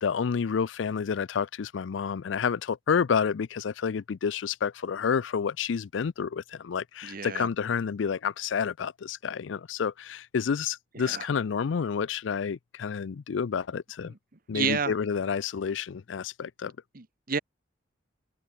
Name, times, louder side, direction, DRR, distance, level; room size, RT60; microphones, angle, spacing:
voice 1, 0.0-14.1 14.5-16.7, left 6 dB, 85° left, 0.4 m, -29 dB
voice 2, 7.0-7.5 10.9-11.3 14.1-14.2 14.5-14.9 16.9-17.4, right 5 dB, 50° right, 1.2 m, -30 dB
head